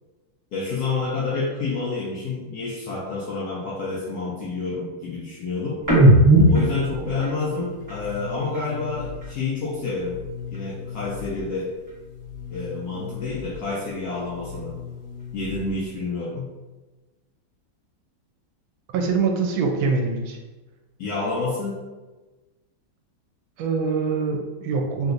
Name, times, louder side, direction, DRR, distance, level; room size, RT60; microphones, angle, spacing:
voice 1, 0.5-5.8 6.5-10.2 10.5-11.7 12.5-14.8 15.3-16.5 21.0-21.8, left 3 dB, 75° left, -5 dB, 0.9 m, -29 dB
sound 1, 5.8-9.4 9.7-11.6 11.8-13.7 14.0-15.9, right 1 dB, 15° right, 0.8 m, -23 dB
voice 2, 18.9-20.4 23.6-25.1, right 4 dB, 80° right, 2 dB, 1.4 m, -24 dB
3.4 x 2.8 x 2.5 m, 1.2 s
omnidirectional pair, 2.2 m